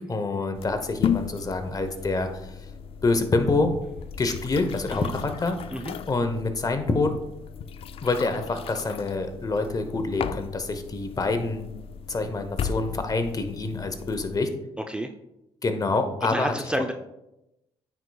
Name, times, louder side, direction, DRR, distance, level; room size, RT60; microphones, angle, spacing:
voice 1, 0.0-2.7 3.0-3.7 4.2-5.6 6.1-7.2 8.0-11.7 12.1-14.5 15.6-16.5, left 3 dB, 30° left, 7 dB, 0.9 m, -26 dB
sound 1, 0.5-14.4, left 7 dB, 55° left, 0.4 m, -35 dB
voice 2, 16.3-16.9, equal, 10° right, 5 dB, 0.5 m, -29 dB
9.3 x 4.7 x 2.3 m, 0.90 s
supercardioid pair, 65°, 12 cm